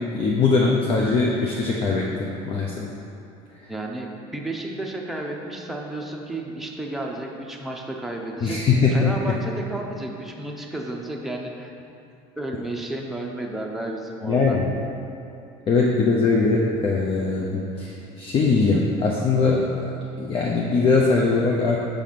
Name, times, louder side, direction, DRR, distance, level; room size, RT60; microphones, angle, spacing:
voice 1, 0.0-2.9 8.4-9.1 14.2-14.7 15.7-21.8, left 4 dB, 40° left, -2 dB, 0.7 m, -21 dB
voice 2, 3.7-11.7 12.4-14.6, right 1 dB, ahead, -1 dB, 0.8 m, -32 dB
6.4 x 3.5 x 5.9 m, 2.7 s
supercardioid pair, 105°, 15 cm